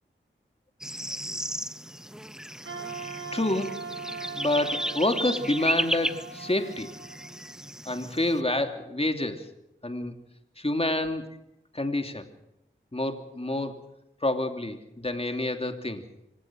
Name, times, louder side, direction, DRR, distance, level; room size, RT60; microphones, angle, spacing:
sound 1, 0.8-8.4, equal, 5° right, 0.9 m, -34 dB
Wind instrument woodwind instrument, 2.6-7.7, right 5 dB, 80° right, 7.2 m, -40 dB
voice 1, 3.3-3.9 4.3-6.9 7.9-9.5 9.8-10.1 10.6-11.3 11.7-12.3 12.9-13.7 14.2-16.0, left 1 dB, 30° left, 6 dB, 2.9 m, -28 dB
26.0 x 16.5 x 6.3 m, 0.84 s
cardioid pair, 40°, 21 cm